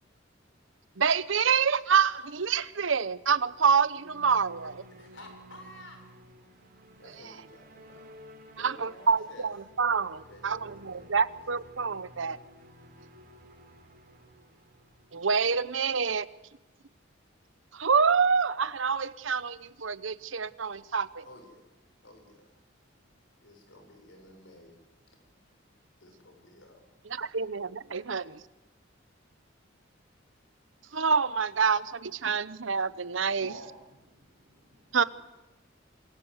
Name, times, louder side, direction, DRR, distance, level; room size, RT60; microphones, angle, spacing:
voice 1, 1.0-4.8 8.6-12.4 15.1-16.3 17.7-21.2 27.1-28.4 30.9-33.5 34.9-35.0, right 6 dB, 70° right, 16 dB, 0.9 m, -27 dB
sound 1, 3.4-15.9, right 1 dB, 50° right, 3.8 m, -54 dB
voice 2, 4.9-6.1 7.0-8.1 8.5-9.5 10.1-11.4 21.2-21.8 22.0-22.6 23.4-24.8 25.1-25.2 26.0-26.8, left 1 dB, 70° left, 5 dB, 6.3 m, -52 dB
voice 3, 33.3-35.1, right 3 dB, 90° right, -7 dB, 7.9 m, -51 dB
26.5 x 22.5 x 8.1 m, 1.0 s
head